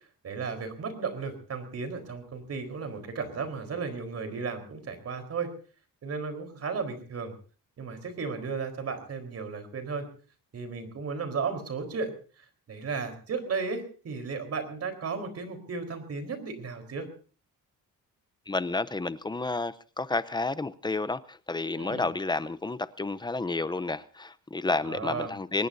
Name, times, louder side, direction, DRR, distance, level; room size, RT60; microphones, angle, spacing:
voice 1, 0.2-5.5 6.0-7.3 7.8-10.1 10.5-12.1 12.7-17.1 21.8-22.1 24.8-25.3, right 5 dB, 45° right, 4.3 m, -34 dB
voice 2, 18.5-25.7, left 3 dB, 15° left, 0.7 m, -31 dB
24.0 x 19.5 x 2.7 m
cardioid pair, 125°, 34 cm